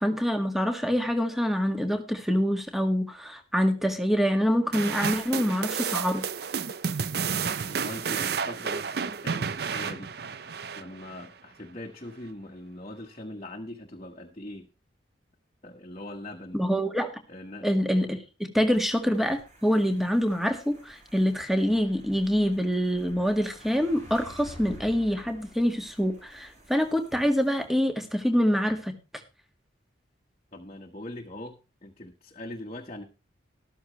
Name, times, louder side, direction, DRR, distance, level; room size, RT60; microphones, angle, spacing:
voice 1, 0.0-6.2 16.5-17.1 17.6-28.9, equal, ahead, 6 dB, 1.7 m, -25 dB
sound 1, 4.7-11.3, right 6 dB, 55° right, 0.5 m, -31 dB
voice 2, 7.7-14.7 15.6-16.6 17.3-17.7 30.5-33.0, left 1 dB, 35° left, 1 dB, 1.4 m, -42 dB
sound 2, 18.6-27.6, equal, 40° right, 7.1 m, -51 dB
13.5 x 13.0 x 3.2 m, 0.30 s
head